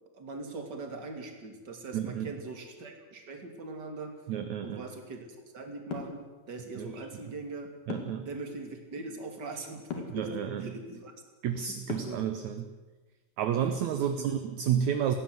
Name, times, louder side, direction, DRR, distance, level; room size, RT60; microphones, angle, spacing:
voice 1, 0.1-4.1 4.6-5.2 5.5-7.7 8.3-11.1 11.6-11.8 12.0-12.2 14.0-14.3, right 3 dB, 30° right, 4 dB, 3.1 m, -41 dB
voice 2, 1.9-2.4 4.3-4.8 6.8-6.9 7.9-8.3 10.1-10.7 11.4-12.7 13.4-15.2, right 9 dB, 65° right, 8 dB, 2.2 m, -31 dB
sound 1, 5.9-6.2 7.9-8.3 9.9-10.2 11.9-12.3, left 6 dB, 70° left, 4.2 m, -37 dB
18.5 x 16.0 x 9.6 m, 1.3 s
omnidirectional pair, 3.9 m